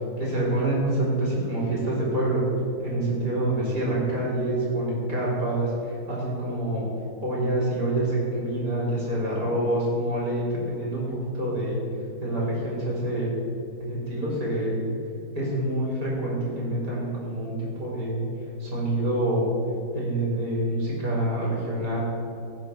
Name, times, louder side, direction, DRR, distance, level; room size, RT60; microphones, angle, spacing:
voice 1, 0.2-2.5 2.8-6.9 7.2-11.1 11.3-11.8 12.2-13.3 13.9-14.8 15.3-18.2 18.6-19.5 19.9-22.0, right 1 dB, 45° right, -5 dB, 4.0 m, -26 dB
17.5 x 6.1 x 6.6 m, 2.9 s
omnidirectional pair, 2.3 m